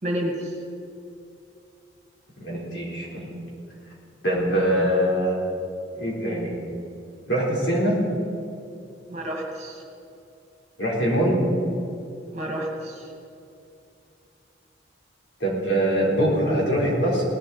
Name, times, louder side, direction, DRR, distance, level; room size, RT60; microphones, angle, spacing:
voice 1, 0.0-0.6 9.1-9.8 12.3-13.1, equal, 35° right, 1 dB, 2.0 m, -30 dB
voice 2, 2.4-3.3 4.2-5.4 5.9-6.5 7.3-8.0 10.8-11.4 15.4-17.2, right 1 dB, 65° left, -4 dB, 4.1 m, -23 dB
18.5 x 12.0 x 4.3 m, 2.7 s
head